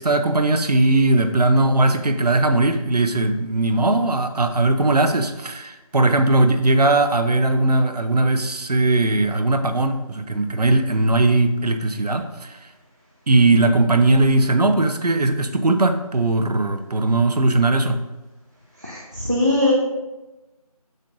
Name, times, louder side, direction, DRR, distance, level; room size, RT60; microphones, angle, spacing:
voice 1, 0.0-12.6 13.3-18.0, right 2 dB, 90° right, 8 dB, 0.7 m, -19 dB
voice 2, 18.8-19.7, left 2 dB, 30° right, -4 dB, 0.5 m, -21 dB
6.4 x 6.2 x 2.6 m, 1.1 s
figure-of-eight pair, 175°, 20 cm